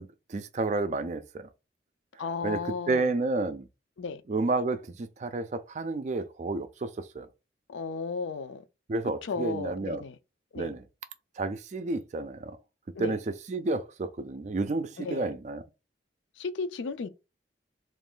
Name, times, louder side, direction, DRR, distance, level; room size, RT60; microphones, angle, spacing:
voice 1, 0.0-1.5 2.4-2.6 2.9-3.7 4.3-7.3 8.9-10.0 10.6-10.8 11.4-12.6 13.0-13.2 13.5-15.6, right 3 dB, 40° right, 0.4 m, -31 dB
voice 2, 2.2-3.1 4.0-4.2 7.7-8.6 9.2-10.2 10.5-10.7 12.9-13.2 15.0-15.3 16.4-17.1, left 4 dB, 85° left, 0.4 m, -34 dB
3.0 x 2.5 x 3.8 m
head